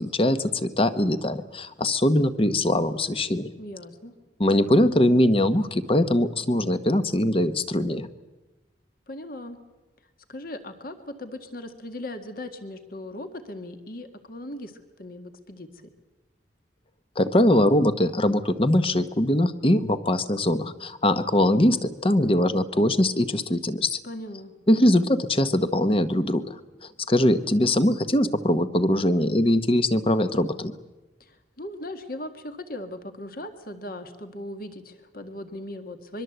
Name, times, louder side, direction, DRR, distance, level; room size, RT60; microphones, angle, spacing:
voice 1, 0.0-3.5 4.4-8.1 17.2-24.0 24.7-26.5 27.1-30.7, left 1 dB, 30° left, 11 dB, 1.1 m, -22 dB
voice 2, 3.6-4.1 9.1-9.6 10.3-14.7 15.0-15.9 24.0-24.5 31.2-36.2, left 1 dB, 50° left, 8 dB, 1.9 m, -38 dB
24.0 x 23.0 x 8.0 m, 1.1 s
head